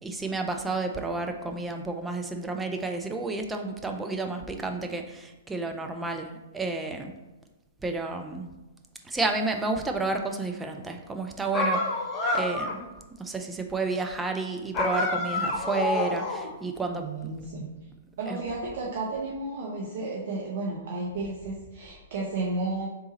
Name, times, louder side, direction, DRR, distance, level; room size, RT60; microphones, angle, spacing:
voice 1, 0.0-7.1 7.8-8.5 9.0-11.8 12.3-12.8 13.2-17.0 18.3-18.4, right 3 dB, 10° right, 4 dB, 0.4 m, -31 dB
sound 1, 11.5-12.9 14.7-16.5, left 2 dB, 25° left, 0.7 m, -28 dB
voice 2, 16.8-17.7 18.2-22.9, right 3 dB, 55° right, -3 dB, 0.7 m, -33 dB
3.6 x 2.9 x 4.0 m, 1.1 s
figure-of-eight pair, 115°, 0 cm